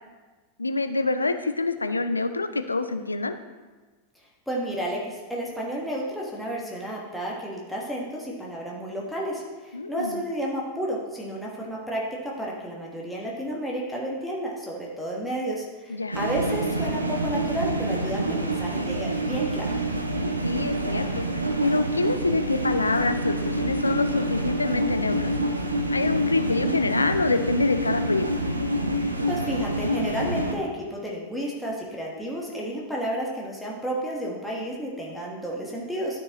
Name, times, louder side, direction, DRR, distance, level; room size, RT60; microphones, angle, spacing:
voice 1, 0.6-3.3 9.7-10.2 15.9-16.2 20.4-25.3 25.9-28.2, left 3 dB, 80° left, 9 dB, 0.4 m, -26 dB
voice 2, 4.5-19.7 29.3-36.2, right 1 dB, ahead, -4 dB, 1.3 m, -31 dB
sound 1, 16.1-30.6, right 1 dB, 80° right, 0.6 m, -27 dB
12.0 x 4.7 x 3.0 m, 1.3 s
figure-of-eight pair, 90°, 0 cm